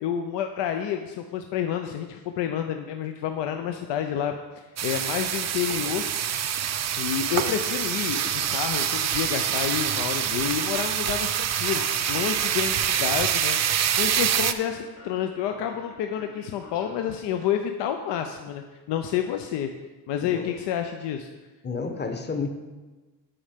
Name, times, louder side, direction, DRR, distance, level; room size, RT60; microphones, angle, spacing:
voice 1, 0.0-6.0 7.0-11.8 12.1-13.6 14.0-19.7 20.1-21.3, left 9 dB, 85° left, 6 dB, 0.6 m, -29 dB
sound 1, 4.8-14.5, right 9 dB, 40° right, 0.5 m, -26 dB
Alarm, 11.5-13.6 13.9-17.2, left 3 dB, 55° left, 2.3 m, -46 dB
voice 2, 20.2-20.5 21.6-22.5, left 4 dB, 25° left, 6 dB, 0.9 m, -31 dB
8.6 x 5.4 x 5.1 m, 1.2 s
cardioid pair, 120°, 41 cm